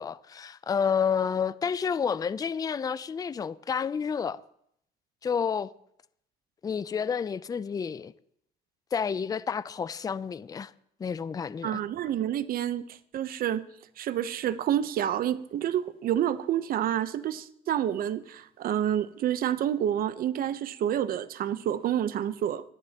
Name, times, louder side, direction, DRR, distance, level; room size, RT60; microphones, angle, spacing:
voice 1, 0.0-4.4 5.2-5.7 6.6-8.1 8.9-10.7 11.0-11.8, left 6 dB, 20° left, 0.4 m, -30 dB
voice 2, 11.6-13.6 14.0-22.6, right 10 dB, 60° right, 0.8 m, -28 dB
25.5 x 11.0 x 2.9 m
cardioid pair, 110°, 17 cm